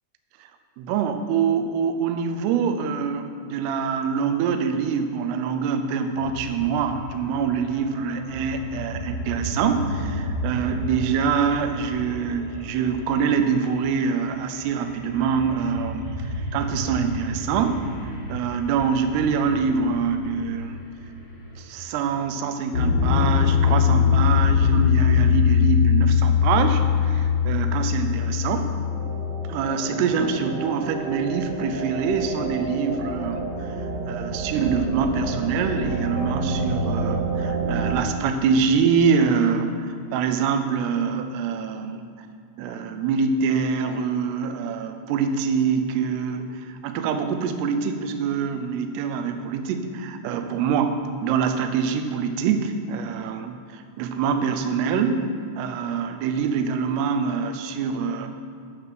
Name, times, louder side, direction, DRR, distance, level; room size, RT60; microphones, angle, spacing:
voice 1, 0.8-17.9 18.3-20.8 21.6-28.7 29.5-33.7 34.1-42.1 42.6-50.9 51.2-58.3, right 6 dB, 85° right, 7 dB, 2.3 m, -25 dB
sound 1, 6.1-22.1, equal, 40° left, 1.3 m, -34 dB
sound 2, 22.7-29.5, left 8 dB, 75° left, 1.2 m, -20 dB
sound 3, 27.0-37.9, right 3 dB, 70° right, 3.5 m, -30 dB
8.4 x 5.7 x 7.7 m, 2.3 s
omnidirectional pair, 5.6 m